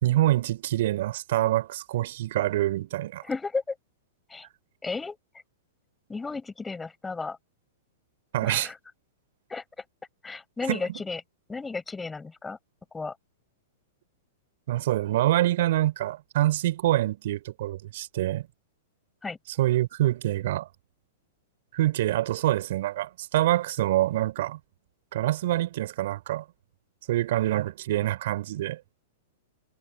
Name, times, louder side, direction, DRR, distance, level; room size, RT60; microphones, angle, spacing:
voice 1, 0.0-3.2 8.3-8.7 10.7-10.8 14.7-18.5 19.6-20.7 21.7-24.6 25.1-26.4 27.1-28.8, right 14 dB, 65° right, 3.8 m, -25 dB
voice 2, 3.2-3.8 4.3-4.5 4.8-5.2 6.1-7.4 8.4-8.8 9.5-9.6 10.2-11.2 11.5-12.6 12.9-13.1 19.2-19.4, left 4 dB, 10° left, 6.8 m, -33 dB
hypercardioid pair, 125°, 0 cm